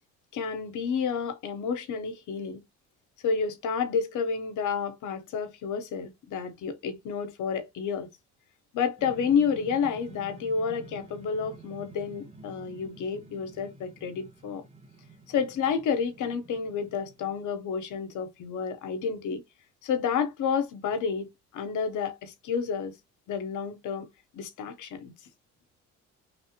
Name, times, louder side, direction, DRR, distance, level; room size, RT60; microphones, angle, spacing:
voice 1, 0.3-2.6 3.2-8.1 8.7-14.6 15.3-19.4 19.8-21.3 21.5-22.9 23.3-24.1 24.3-25.1, left 6 dB, 80° left, 0.9 m, -30 dB
sound 1, 9.0-17.6, right 3 dB, 20° right, 0.7 m, -50 dB
3.2 x 2.5 x 2.8 m
cardioid pair, 90°, 30 cm